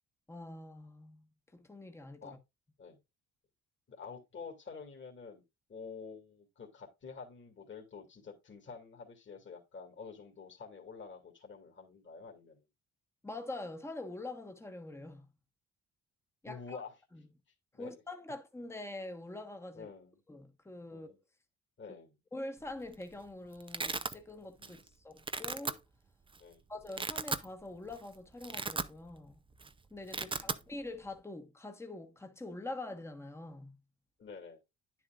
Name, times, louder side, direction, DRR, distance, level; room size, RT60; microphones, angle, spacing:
voice 1, 0.3-2.4 13.2-15.3 16.4-16.8 17.1-17.2 17.8-19.9 20.3-21.1 22.3-25.8 26.7-29.4 29.9-33.8, left 2 dB, 10° left, 1.3 m, -45 dB
voice 2, 3.9-5.4 5.7-12.6 16.5-16.9 17.7-18.0 19.7-20.2 20.9-21.2 21.8-22.2 24.6-24.9 26.4-26.6 30.2-30.6 34.2-34.6, left 5 dB, 40° left, 2.5 m, -48 dB
Domestic sounds home sounds, 22.7-23.0 23.3-24.1 24.6-24.9 25.2-25.7 26.3-26.4 26.8-27.5 27.9-28.0 28.3-29.3 29.5-29.7 29.9-30.6, right 4 dB, 15° right, 0.6 m, -36 dB
9.8 x 7.3 x 2.4 m
cardioid pair, 90°, 30 cm